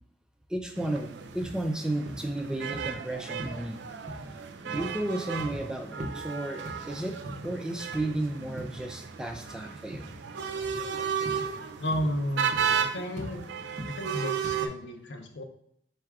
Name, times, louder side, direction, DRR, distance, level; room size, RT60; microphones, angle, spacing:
voice 1, 0.5-3.8 4.6-7.2 7.4-10.1, right 1 dB, 5° right, 3 dB, 0.3 m, -33 dB
sound 1, 0.7-14.7, right 7 dB, 85° right, 0.4 m, -34 dB
sound 2, 0.8-0.9 1.4-1.6 2.1-2.3 2.7-2.9 3.4-3.6 4.1-4.3 4.7-5.0 5.4-5.7 6.0-6.2 6.7-7.5 7.9-8.2 8.6-8.8 9.3-9.5 9.9-10.2 10.6-10.8 11.3-11.5 11.9-12.1 12.5-12.8 13.2-13.4 13.8-14.0 14.4-14.6, equal, 45° right, 0.6 m, -40 dB
voice 2, 11.8-13.5 13.8-15.4, equal, 75° left, 6 dB, 0.6 m, -33 dB
4.1 x 2.3 x 4.6 m, 0.71 s
head